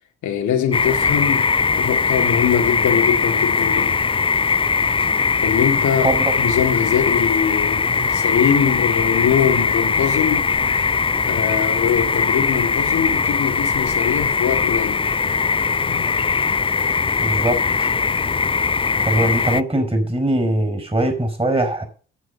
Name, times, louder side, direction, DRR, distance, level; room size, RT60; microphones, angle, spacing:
voice 1, 0.2-4.0 5.4-10.5 11.3-15.1 15.8-16.1, left 8 dB, 70° left, 2.0 m, -22 dB
sound 1, 0.7-19.6, left 5 dB, 20° left, 0.4 m, -20 dB
voice 2, 17.2-17.6 19.0-21.8, right 1 dB, 20° right, 5.0 m, -21 dB
10.0 x 7.6 x 6.6 m
hypercardioid pair, 45°, 31 cm